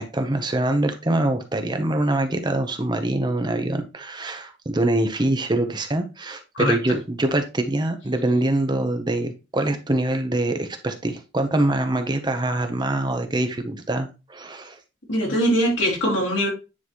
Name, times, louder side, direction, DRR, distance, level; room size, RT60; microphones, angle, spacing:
voice 1, 0.0-14.8, right 1 dB, 25° right, 0.8 m, -24 dB
voice 2, 15.1-16.5, equal, 80° left, 3.5 m, -21 dB
9.6 x 4.0 x 3.1 m
head